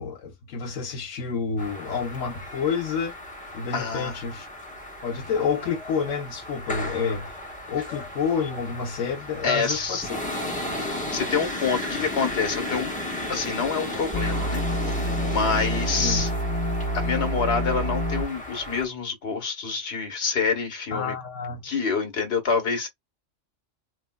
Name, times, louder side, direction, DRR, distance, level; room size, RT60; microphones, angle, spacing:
voice 1, 0.0-3.1 3.5-4.5 5.0-7.3 7.7-10.2 16.0-16.2 20.9-21.6, left 6 dB, 85° left, 1.1 m, -29 dB
sound 1, 1.6-18.9, left 1 dB, 5° left, 1.0 m, -35 dB
voice 2, 3.7-4.2 9.4-10.0 10.7-12.9 13.3-16.3 16.9-21.1 21.6-22.9, left 5 dB, 60° left, 1.3 m, -27 dB
sound 2, 14.1-18.2, equal, 15° right, 1.2 m, -27 dB
3.3 x 2.8 x 2.2 m
omnidirectional pair, 1.2 m